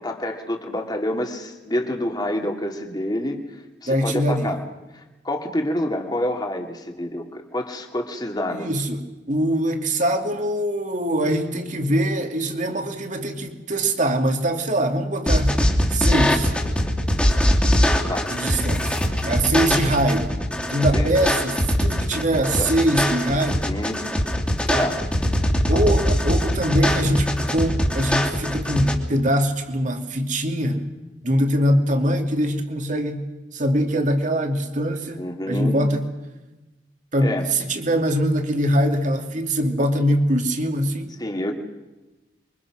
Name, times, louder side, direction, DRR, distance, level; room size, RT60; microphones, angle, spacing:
voice 1, 0.0-3.4 3.8-4.6 4.9-8.7 18.1-18.3 20.9-21.1 22.6-22.7 23.5-24.0 24.8-25.0 25.7-26.0 35.2-35.8 37.2-37.5 41.2-41.5, left 1 dB, 25° left, 3 dB, 2.6 m, -27 dB
voice 2, 3.9-4.5 8.5-15.6 15.9-16.5 18.3-20.3 20.7-23.7 24.7-24.9 25.7-30.9 31.2-33.2 33.5-36.1 37.1-41.1, right 1 dB, 45° right, 5 dB, 2.6 m, -23 dB
sound 1, 15.3-28.9, equal, 5° left, 3.0 m, -22 dB
28.0 x 24.0 x 6.2 m, 1.1 s
head